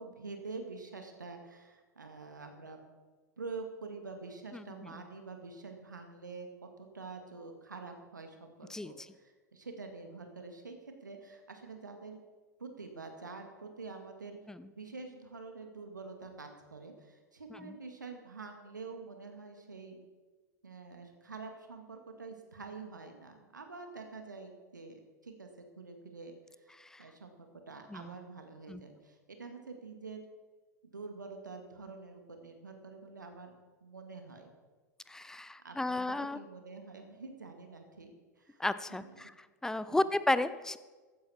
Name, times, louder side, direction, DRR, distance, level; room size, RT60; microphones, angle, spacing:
voice 1, 0.0-2.8 3.4-6.5 6.8-10.8 11.0-12.2 12.6-14.4 14.7-20.0 20.6-26.3 27.0-30.2 30.8-33.5 33.8-34.5 35.6-36.0 36.3-38.1 38.4-38.6 38.9-39.3 39.9-40.1, right 4 dB, 80° right, 5 dB, 2.1 m, -47 dB
voice 2, 35.1-36.4 38.6-39.3 39.6-40.8, left 2 dB, 5° left, 14 dB, 0.6 m, -33 dB
15.0 x 12.0 x 4.5 m, 1.4 s
figure-of-eight pair, 90°, 10 cm